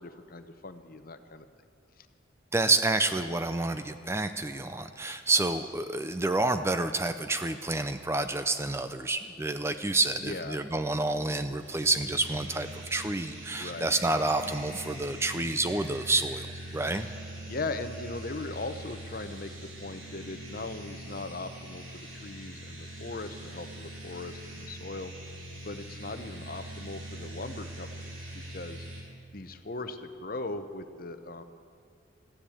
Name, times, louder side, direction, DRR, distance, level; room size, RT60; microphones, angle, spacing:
voice 1, 0.0-1.4 2.0-2.1 10.2-10.6 13.6-13.9 17.5-25.1 25.6-28.9 29.3-31.4, left 3 dB, 45° left, 10 dB, 0.8 m, -39 dB
voice 2, 2.5-17.1, right 2 dB, 15° right, 9 dB, 0.4 m, -29 dB
sound 1, 11.6-29.0, right 1 dB, 80° right, 3.4 m, -43 dB
14.5 x 10.5 x 8.4 m, 2.5 s
head